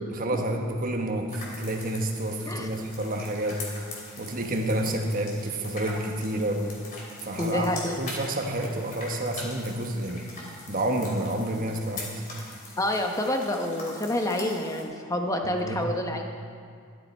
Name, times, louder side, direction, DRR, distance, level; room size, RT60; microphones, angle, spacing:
voice 1, 0.2-3.7 4.2-6.7 7.2-10.3 10.7-12.3 15.4-15.9, right 1 dB, 40° right, 3 dB, 1.2 m, -29 dB
sound 1, 1.3-14.8, left 2 dB, 40° left, 2.7 m, -42 dB
voice 2, 7.4-8.0 12.8-16.2, left 1 dB, 15° left, 3 dB, 0.9 m, -28 dB
13.0 x 12.0 x 4.3 m, 2.2 s
head